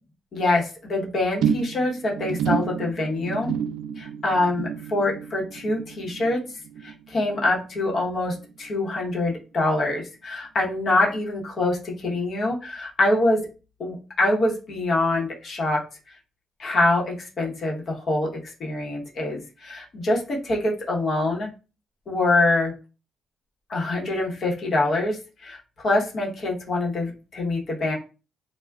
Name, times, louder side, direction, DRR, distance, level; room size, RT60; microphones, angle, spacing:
voice 1, 0.3-3.5 4.0-13.5 13.8-15.8 16.1-16.2 16.6-21.5 22.1-22.7 23.7-28.0, left 2 dB, 50° left, -2 dB, 0.9 m, -25 dB
sound 1, 1.4-8.0 8.3-8.7 9.0-9.1, right 8 dB, 80° right, 0.3 m, -30 dB
2.2 x 2.1 x 3.5 m, 0.33 s
cardioid pair, 90°, 0 cm